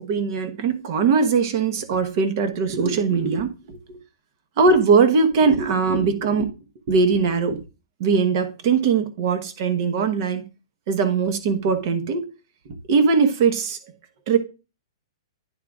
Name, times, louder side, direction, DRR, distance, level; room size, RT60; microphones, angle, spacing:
voice 1, 0.0-4.0 4.6-6.5 6.9-7.6 8.0-10.4 10.9-12.3 12.9-13.8 14.3-14.4, right 5 dB, 40° right, 1.1 m, -20 dB
10.5 x 3.7 x 3.6 m
hypercardioid pair, 165°, 3 cm